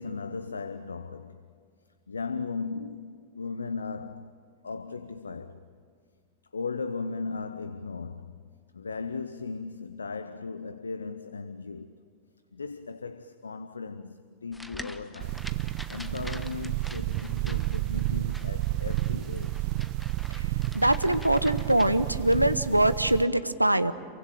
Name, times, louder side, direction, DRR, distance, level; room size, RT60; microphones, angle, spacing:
voice 1, 0.0-1.5 2.1-4.3 4.6-5.8 6.5-12.0 12.5-15.5 15.9-19.7, left 4 dB, 75° left, 0.8 m, -37 dB
sound 1, 14.5-22.4, left 1 dB, 5° left, 1.2 m, -46 dB
sound 2, 15.2-23.2, right 18 dB, 45° right, 0.6 m, -31 dB
voice 2, 20.7-23.9, right 1 dB, 85° right, 0.9 m, -23 dB
27.5 x 23.5 x 9.0 m
figure-of-eight pair, 90°, 0 cm